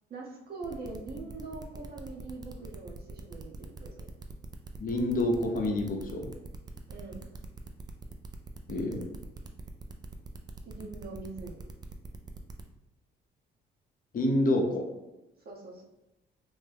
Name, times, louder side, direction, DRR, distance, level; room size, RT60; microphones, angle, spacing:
voice 1, 0.1-4.1 6.9-7.2 10.7-11.6 15.4-15.8, right 3 dB, 50° right, -1 dB, 0.9 m, -43 dB
sound 1, 0.6-12.6, right 4 dB, 20° right, 0.3 m, -45 dB
voice 2, 4.8-6.3 8.7-9.1 14.1-14.9, left 1 dB, 45° left, 1 dB, 0.7 m, -28 dB
3.1 x 2.1 x 3.3 m, 0.99 s
cardioid pair, 90°, 20 cm